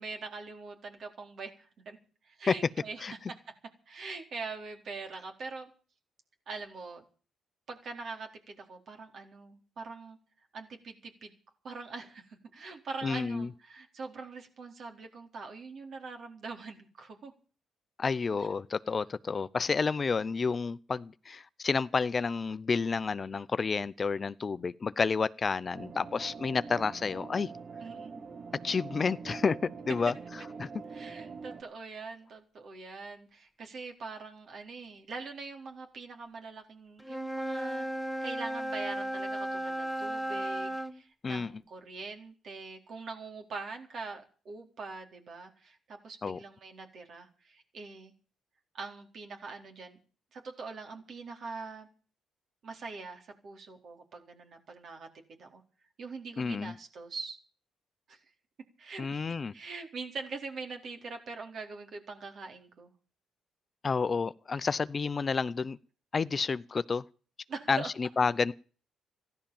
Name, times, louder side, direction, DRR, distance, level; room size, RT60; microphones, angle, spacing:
voice 1, 0.0-2.0 2.2-3.4 3.9-5.7 6.5-7.0 7.7-10.2 10.5-11.3 11.6-17.3 18.4-18.5 27.8-28.3 30.9-37.9 38.2-48.1 48.7-50.0 50.3-51.9 52.6-55.6 56.0-57.4 58.1-58.2 58.8-62.9 64.5-64.6 67.5-67.9, right 4 dB, 60° right, 4.1 m, -43 dB
voice 2, 13.0-13.5 18.0-27.5 28.6-30.1 30.6-30.7 41.2-41.5 46.2-46.4 56.4-56.7 59.0-59.5 63.8-65.8 66.1-67.0 67.7-68.5, left 5 dB, 35° left, 0.7 m, -30 dB
sound 1, 25.7-31.6, right 5 dB, 45° right, 2.1 m, -44 dB
Wind instrument woodwind instrument, 37.0-41.0, right 1 dB, ahead, 1.5 m, -35 dB
15.0 x 11.5 x 7.1 m
cardioid pair, 90°, 0 cm